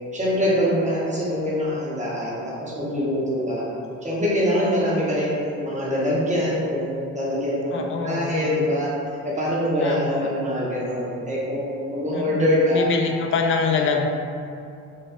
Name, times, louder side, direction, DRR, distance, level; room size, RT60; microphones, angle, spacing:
voice 1, 0.1-3.6 4.0-8.9 9.2-12.8, equal, 25° right, -6 dB, 0.9 m, -24 dB
voice 2, 7.7-8.3 9.8-10.3 12.1-14.1, left 5 dB, 45° left, 2 dB, 0.4 m, -25 dB
4.1 x 2.2 x 2.4 m, 2.5 s
cardioid pair, 90°, 30 cm